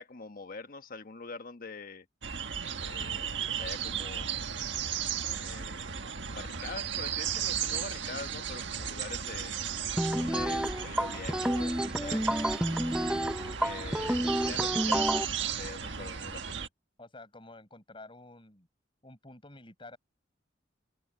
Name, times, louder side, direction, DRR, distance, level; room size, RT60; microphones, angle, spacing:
voice 1, 0.0-2.1 2.8-4.4 5.4-9.5 10.2-12.5 13.6-16.6, left 4 dB, 50° left, 1.3 m, -44 dB
sound 1, 2.2-16.7, right 8 dB, 70° right, 1.6 m, -35 dB
sound 2, 10.0-15.2, right 1 dB, 5° right, 0.6 m, -30 dB
voice 2, 17.0-18.7 19.0-20.0, left 2 dB, 30° left, 5.3 m, -50 dB
open air
head